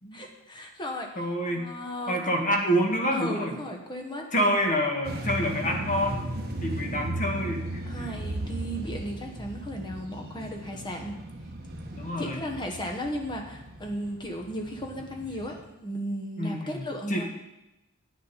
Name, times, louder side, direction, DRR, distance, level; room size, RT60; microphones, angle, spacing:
voice 1, 0.1-2.3 3.1-4.3 7.9-11.1 12.2-17.3, equal, 20° left, 2 dB, 1.3 m, -35 dB
voice 2, 1.2-1.7 2.1-3.5 4.3-6.2 6.6-8.1 11.9-12.4 16.4-17.3, equal, 35° left, 2 dB, 1.6 m, -27 dB
sound 1, 5.0-15.6, right 1 dB, 45° right, 1.3 m, -36 dB
10.0 x 8.9 x 4.2 m, 0.92 s
head